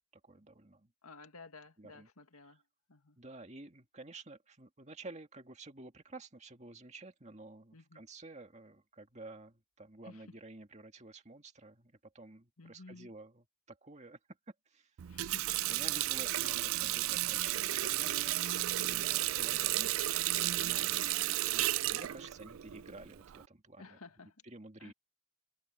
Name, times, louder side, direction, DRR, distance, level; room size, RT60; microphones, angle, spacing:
voice 1, 0.2-0.9 1.8-2.1 2.4-2.6 3.2-14.2 14.7-14.9 15.7-18.4 18.8-21.0 21.4-24.0 24.4-24.9, right 2 dB, 30° right, 2.1 m, -51 dB
voice 2, 1.0-2.6 2.9-3.2 7.7-8.0 10.0-10.2 12.6-13.1 15.1-15.6 18.5-18.9 19.5-19.8 21.4-21.9 23.8-24.4 24.8-24.9, left 3 dB, 85° left, 1.9 m, -54 dB
Water tap faucet, 15.0-23.4, right 15 dB, 65° right, 0.4 m, -33 dB
head